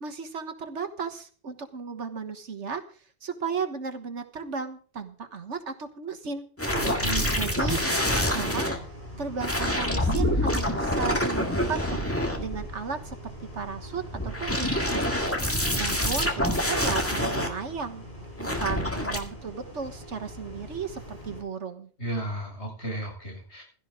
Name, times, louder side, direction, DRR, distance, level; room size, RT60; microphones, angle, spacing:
voice 1, 0.0-2.8 3.2-6.5 7.3-8.8 9.2-12.1 12.4-15.0 15.8-18.1 18.4-21.9, right 5 dB, 70° right, 8 dB, 1.7 m, -34 dB
sound 1, 6.6-8.8 9.4-12.8 14.1-17.5 18.4-19.2, left 1 dB, 10° left, 1.9 m, -26 dB
voice 2, 6.7-7.3 22.0-23.6, right 1 dB, 65° left, -1 dB, 7.3 m, -33 dB
sound 2, 6.8-21.4, equal, 40° left, 5.1 m, -42 dB
16.0 x 13.0 x 3.7 m, 0.41 s
omnidirectional pair, 1.2 m